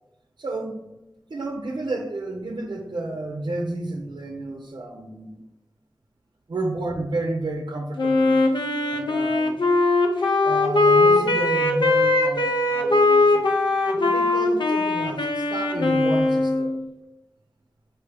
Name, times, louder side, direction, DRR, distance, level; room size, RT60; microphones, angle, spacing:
voice 1, 0.4-0.8 1.3-5.4 6.5-8.4 8.9-9.6 10.4-13.4 13.9-16.8, right 2 dB, 85° right, 2 dB, 0.5 m, -31 dB
Wind instrument woodwind instrument, 8.0-16.8, left 2 dB, 85° left, 0.6 m, -20 dB
4.3 x 3.3 x 3.3 m, 0.94 s
wide cardioid pair, 45°, 8 cm